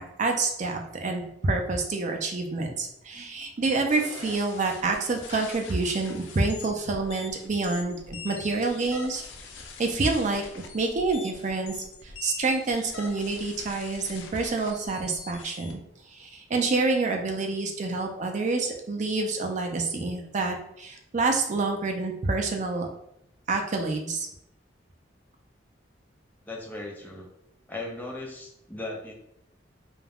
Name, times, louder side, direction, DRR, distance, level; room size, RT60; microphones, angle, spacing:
voice 1, 0.0-9.2 9.8-15.8 16.1-22.9 23.5-24.3, right 3 dB, 40° right, 3 dB, 0.4 m, -28 dB
sound 1, 3.9-15.7, left 4 dB, 85° left, 0.4 m, -44 dB
voice 2, 26.5-27.3 27.7-29.1, left 2 dB, 10° left, -1 dB, 0.5 m, -37 dB
2.4 x 2.2 x 3.3 m, 0.77 s
head